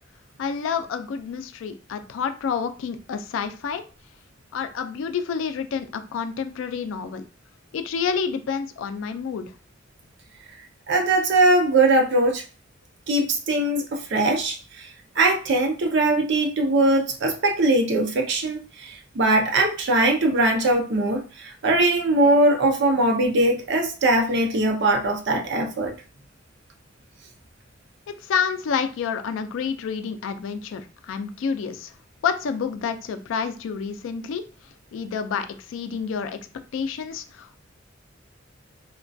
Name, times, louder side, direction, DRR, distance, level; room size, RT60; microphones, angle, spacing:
voice 1, 0.4-3.8 4.5-7.2 7.7-9.5 28.2-31.9 32.2-34.4 34.9-36.4 36.7-37.6, left 6 dB, 75° left, 9 dB, 0.3 m, -28 dB
voice 2, 10.9-12.4 13.1-14.9 15.2-25.9, right 2 dB, 65° right, 3 dB, 0.5 m, -21 dB
2.3 x 2.1 x 2.5 m, 0.35 s
head